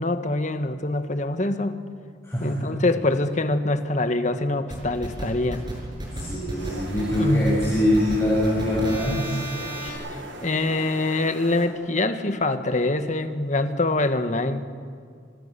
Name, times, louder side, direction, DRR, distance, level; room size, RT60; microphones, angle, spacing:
voice 1, 0.0-1.8 2.4-5.6 7.2-7.6 9.8-10.0 10.4-14.7, left 2 dB, 40° left, 8 dB, 1.5 m, -24 dB
voice 2, 2.2-2.7 6.1-9.4, left 1 dB, 15° left, -7 dB, 6.9 m, -23 dB
sound 1, 4.7-9.9, right 1 dB, 25° right, 7.4 m, -33 dB
sound 2, 6.6-11.7, right 1 dB, 80° right, 4.8 m, -39 dB
29.5 x 25.5 x 7.0 m, 2.2 s
head